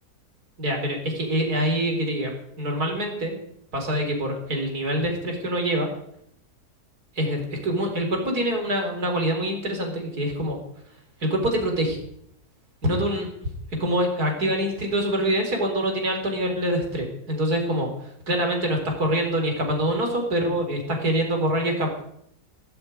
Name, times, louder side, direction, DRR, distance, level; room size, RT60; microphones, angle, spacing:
voice 1, 0.6-3.4 3.7-5.9 7.2-10.6 11.2-12.0 12.8-13.3 13.8-21.9, equal, 70° right, 2 dB, 4.7 m, -25 dB
18.0 x 8.1 x 9.4 m, 0.72 s
omnidirectional pair, 1.7 m